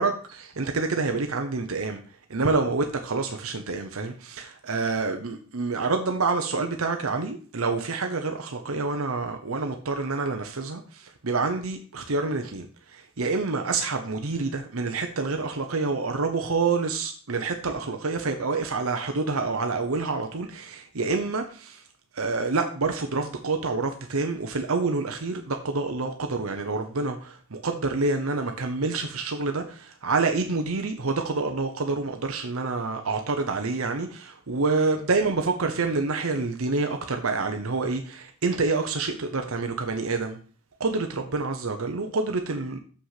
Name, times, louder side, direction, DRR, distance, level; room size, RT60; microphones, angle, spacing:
voice 1, 0.0-21.8 22.1-40.4 40.8-42.8, right 3 dB, 75° right, 0.9 m, -27 dB
7.0 x 5.7 x 5.8 m
head